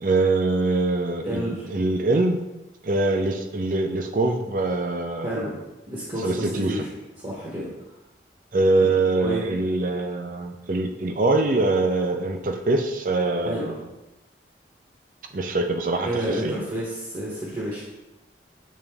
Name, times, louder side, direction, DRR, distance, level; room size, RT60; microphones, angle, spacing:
voice 1, 0.0-2.4 2.8-5.3 6.2-6.9 8.5-13.7 15.3-16.6, right 2 dB, 45° right, 5 dB, 0.5 m, -23 dB
voice 2, 1.2-1.7 5.2-5.6 5.9-6.9 7.2-7.7 8.8-9.4 13.4-13.7 16.0-17.9, right 1 dB, 25° right, -5 dB, 1.0 m, -30 dB
7.4 x 3.9 x 3.5 m, 1.0 s
head